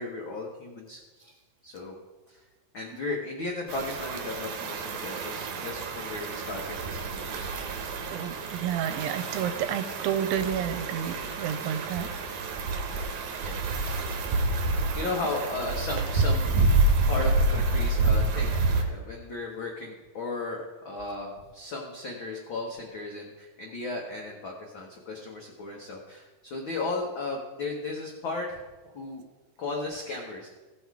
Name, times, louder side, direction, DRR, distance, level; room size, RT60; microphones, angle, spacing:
voice 1, 0.0-1.4 1.6-2.0 2.3-2.4 2.7-7.6 12.6-12.7 13.3-13.5 13.9-14.0 14.9-16.5 17.1-29.2 29.6-30.6, left 3 dB, 75° left, -1 dB, 1.1 m, -35 dB
sound 1, 3.7-18.8, right 2 dB, 65° right, 2.3 m, -28 dB
voice 2, 8.1-12.1, right 9 dB, 90° right, 10 dB, 2.4 m, -30 dB
15.5 x 6.3 x 4.7 m, 1.2 s
omnidirectional pair, 4.1 m